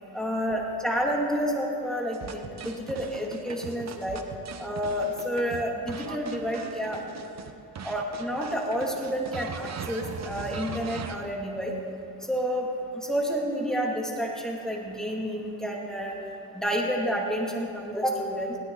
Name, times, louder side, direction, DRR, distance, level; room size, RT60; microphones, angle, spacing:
voice 1, 0.1-4.2 4.6-7.0 7.8-11.7 12.3-12.7 13.0-16.1 16.5-18.6, equal, ahead, -2 dB, 2.6 m, -29 dB
sound 1, 2.1-7.5 7.8-11.2, right 5 dB, 40° right, 1.1 m, -39 dB
21.0 x 16.5 x 4.1 m, 2.6 s
cardioid pair, 125°, 41 cm